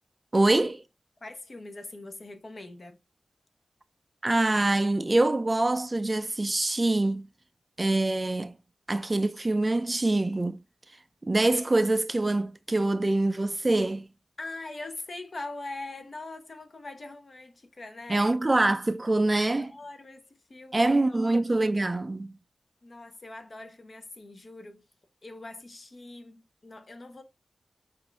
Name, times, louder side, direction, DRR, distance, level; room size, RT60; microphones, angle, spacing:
voice 1, 0.3-0.8 4.2-7.3 7.8-8.5 8.9-10.6 11.2-14.1 18.1-19.7 20.7-22.3, right 2 dB, 30° right, 0.4 m, -25 dB
voice 2, 1.2-3.0 14.4-18.3 19.3-21.4 22.8-24.8 25.2-27.2, left 2 dB, 50° left, 0.9 m, -42 dB
6.1 x 2.5 x 3.3 m
wide cardioid pair, 90°, 0 cm